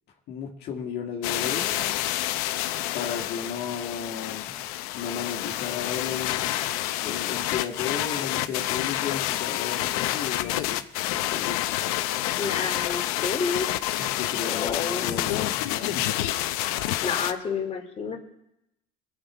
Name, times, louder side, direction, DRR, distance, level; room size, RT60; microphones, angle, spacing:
voice 1, 0.3-1.7 2.9-4.5 4.9-6.6 7.0-11.6 14.0-16.1, left 7 dB, 60° left, -1 dB, 1.8 m, -34 dB
sound 1, 1.2-17.3, left 14 dB, 90° left, 0.7 m, -28 dB
voice 2, 12.4-13.7 14.5-15.1 17.0-18.2, left 5 dB, 35° left, 1 dB, 2.5 m, -29 dB
21.5 x 7.5 x 4.9 m, 0.87 s
supercardioid pair, 85°, 19 cm